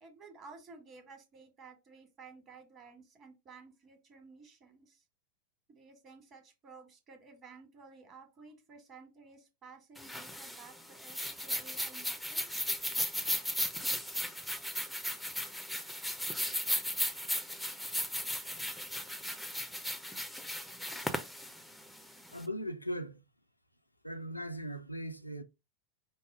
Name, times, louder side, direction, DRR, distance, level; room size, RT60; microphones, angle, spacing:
voice 1, 0.0-5.0 5.7-12.7, right 4 dB, 30° right, 1.4 m, -54 dB
sound 1, 10.0-22.4, left 1 dB, ahead, 0.6 m, -36 dB
voice 2, 22.3-23.2 24.0-25.4, equal, 85° left, 0.5 m, -39 dB
5.4 x 2.1 x 4.7 m
figure-of-eight pair, 90°, 0 cm